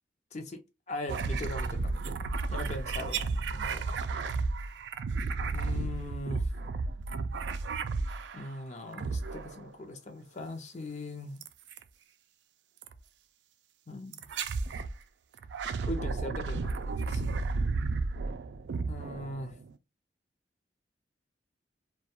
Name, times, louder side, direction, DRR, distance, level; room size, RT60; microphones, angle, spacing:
voice 1, 0.3-0.6 0.9-4.0 5.5-6.5 8.3-11.4 13.9-14.3 15.9-17.4 18.9-19.6, left 1 dB, 40° left, 0.6 m, -40 dB
sound 1, 1.1-8.5 8.9-9.7 11.4-11.8 12.8-13.0 14.1-14.9 15.4-19.7, right 3 dB, 75° right, 0.3 m, -33 dB
2.2 x 2.2 x 2.8 m
head